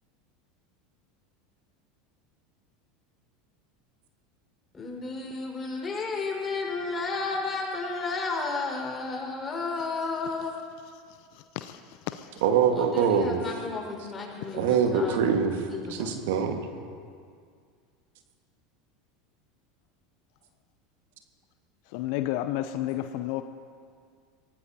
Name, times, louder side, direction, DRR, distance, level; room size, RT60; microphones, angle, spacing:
voice 1, 4.7-10.6 12.7-15.2 15.7-16.1, left 3 dB, 25° left, -1 dB, 4.9 m, -32 dB
voice 2, 11.3-11.8 12.1-12.4 21.9-23.4, left 13 dB, 60° left, 10 dB, 0.6 m, -31 dB
voice 3, 12.4-13.4 14.5-15.6 15.9-16.7, right 7 dB, 65° right, 5 dB, 1.6 m, -24 dB
24.0 x 18.0 x 2.8 m, 2.2 s
hypercardioid pair, 80°, 0 cm